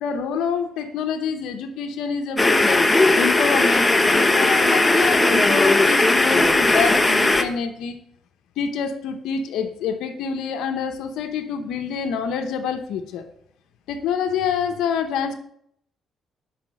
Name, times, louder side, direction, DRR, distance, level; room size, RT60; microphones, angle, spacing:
voice 1, 0.0-2.8 3.2-8.0 8.6-13.3 13.9-15.3, left 6 dB, 85° left, 6 dB, 0.8 m, -27 dB
sound 1, 2.4-7.4, left 2 dB, 15° left, 0.8 m, -17 dB
5.8 x 5.0 x 6.3 m, 0.68 s
cardioid pair, 90°, 0 cm